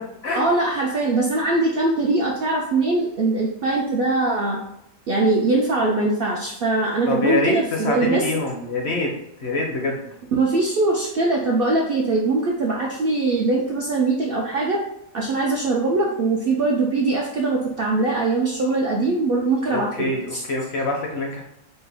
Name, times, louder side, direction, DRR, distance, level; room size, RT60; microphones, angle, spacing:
voice 1, 0.4-4.6 5.1-8.2 10.4-14.8 15.1-20.4, right 3 dB, 65° right, -2 dB, 0.5 m, -22 dB
voice 2, 7.1-9.1 9.4-10.0 19.7-21.4, left 2 dB, 60° left, 1 dB, 0.7 m, -25 dB
4.3 x 2.2 x 3.3 m, 0.82 s
omnidirectional pair, 1.4 m